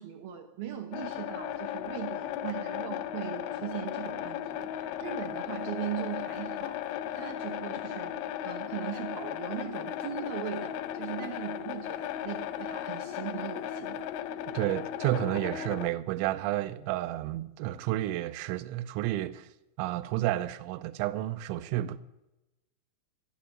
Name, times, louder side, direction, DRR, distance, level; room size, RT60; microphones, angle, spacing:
voice 1, 0.0-14.0, right 11 dB, 70° right, 2.5 m, -39 dB
sound 1, 0.9-15.9, left 11 dB, 85° left, 3.1 m, -36 dB
voice 2, 14.5-19.5 19.8-22.0, right 14 dB, 85° right, 3.1 m, -31 dB
13.5 x 11.5 x 7.3 m
omnidirectional pair, 5.4 m